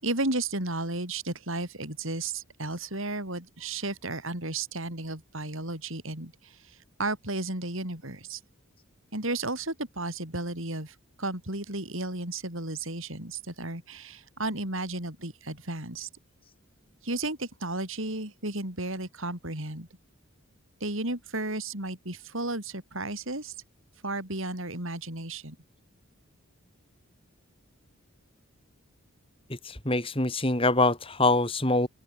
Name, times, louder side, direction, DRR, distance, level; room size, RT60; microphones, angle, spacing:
voice 1, 0.0-8.4 9.1-16.1 17.0-19.9 20.8-23.5 24.0-25.6, right 2 dB, 65° right, 6.7 m, -33 dB
voice 2, 29.6-31.9, left 2 dB, 25° left, 4.5 m, -24 dB
open air
head